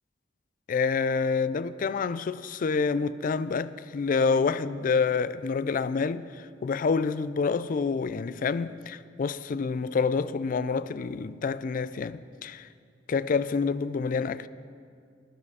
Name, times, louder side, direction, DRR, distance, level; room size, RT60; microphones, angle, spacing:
voice 1, 0.7-12.7 13.1-14.5, left 5 dB, 50° left, 0.3 m, -27 dB
13.5 x 9.9 x 4.8 m
head